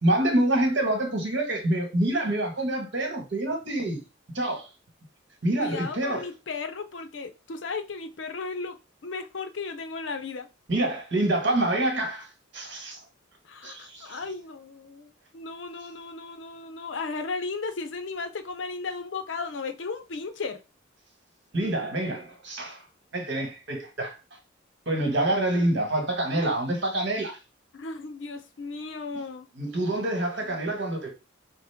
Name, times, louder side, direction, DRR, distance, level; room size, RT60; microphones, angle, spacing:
voice 1, 0.0-4.0 4.3-4.7 5.4-6.3 10.7-12.3 12.5-13.0 13.6-14.2 21.5-22.8 23.1-24.2 24.9-27.4 29.6-31.1, right 1 dB, 65° right, 1.4 m, -26 dB
voice 2, 5.6-8.8 9.0-10.5 13.4-20.6 27.7-29.5 30.3-30.8, left 4 dB, 70° left, 0.6 m, -35 dB
5.0 x 2.1 x 3.4 m
head